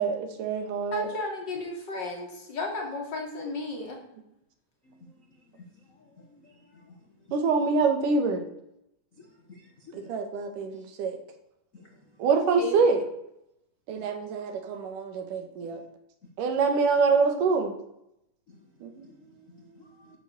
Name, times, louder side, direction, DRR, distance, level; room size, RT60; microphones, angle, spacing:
voice 1, 0.0-1.1 7.3-8.4 9.9-11.2 12.2-13.0 13.9-15.8 16.4-17.7 18.8-18.9, right 4 dB, 85° right, 5 dB, 3.1 m, -25 dB
voice 2, 0.9-4.0 12.6-12.8, left 2 dB, 35° left, 0 dB, 3.0 m, -33 dB
voice 3, 6.0-6.6 9.2-10.0 11.7-11.9 15.6-15.8 18.5-18.6 19.8-20.1, left 3 dB, 80° left, 1 dB, 0.7 m, -53 dB
11.0 x 7.1 x 6.7 m, 0.81 s
omnidirectional pair, 3.6 m